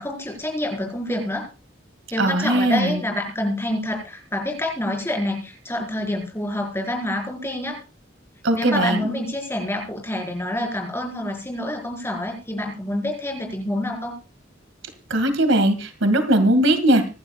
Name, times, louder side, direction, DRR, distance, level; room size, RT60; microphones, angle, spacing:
voice 1, 0.0-1.4 2.1-7.8 8.5-14.1, left 1 dB, 15° left, 2 dB, 4.9 m, -27 dB
voice 2, 2.2-3.0 8.4-9.0 15.1-17.1, right 1 dB, 85° right, 8 dB, 2.2 m, -19 dB
25.0 x 11.5 x 2.4 m, 0.32 s
head